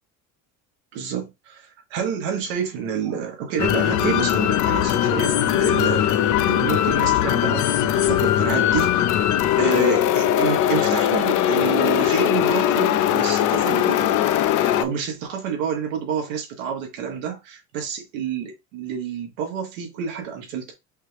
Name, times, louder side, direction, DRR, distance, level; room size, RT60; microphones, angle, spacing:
voice 1, 0.9-6.1 6.4-9.1 9.6-14.2 14.6-20.7, right 7 dB, 85° right, 1.6 m, -29 dB
sound 1, 3.6-14.8, left 11 dB, 55° left, 0.6 m, -20 dB
5.4 x 2.4 x 3.4 m
supercardioid pair, 80°, 38 cm